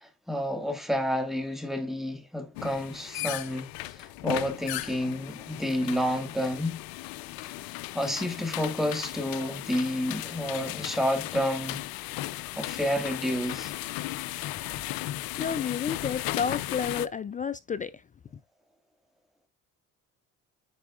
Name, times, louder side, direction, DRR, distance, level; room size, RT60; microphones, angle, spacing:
voice 1, 0.0-6.8 7.9-11.8 12.6-13.7, equal, ahead, 1.9 m, -30 dB
sound 1, 2.5-17.1, left 17 dB, 70° left, 0.6 m, -36 dB
voice 2, 15.4-18.0, left 7 dB, 25° left, 0.3 m, -31 dB
9.8 x 4.6 x 2.4 m
supercardioid pair, 90°, 36 cm